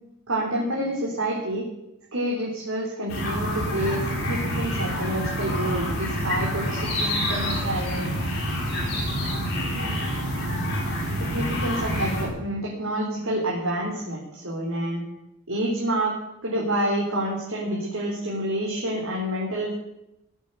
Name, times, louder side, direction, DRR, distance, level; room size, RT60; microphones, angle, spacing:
voice 1, 0.3-1.6 2.1-8.0 11.2-15.0 15.5-16.1 16.4-19.7, right 1 dB, 80° right, -4 dB, 3.9 m, -28 dB
sound 1, 3.1-12.3, equal, 50° left, 6.2 m, -27 dB
17.0 x 8.3 x 9.1 m, 0.88 s
head